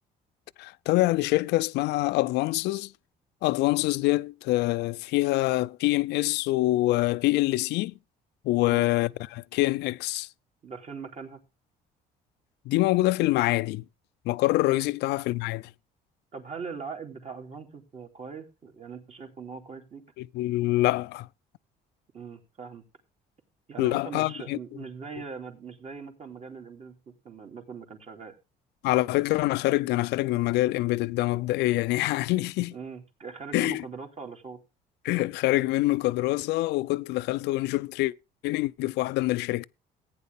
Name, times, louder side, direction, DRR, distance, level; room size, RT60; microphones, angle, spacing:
voice 1, 0.6-2.9 3.4-7.9 8.4-10.3 12.7-13.8 14.3-15.6 20.2-21.3 23.8-24.6 28.8-32.7 33.5-33.8 35.0-38.1 38.4-39.6, left 18 dB, 85° left, 0.5 m, -25 dB
voice 2, 10.6-11.4 14.7-14.8 16.3-20.0 22.1-22.8 23.7-26.9 27.2-28.3 32.7-34.6, right 5 dB, 40° right, 2.9 m, -41 dB
15.0 x 9.4 x 3.5 m
cardioid pair, 110°, 17 cm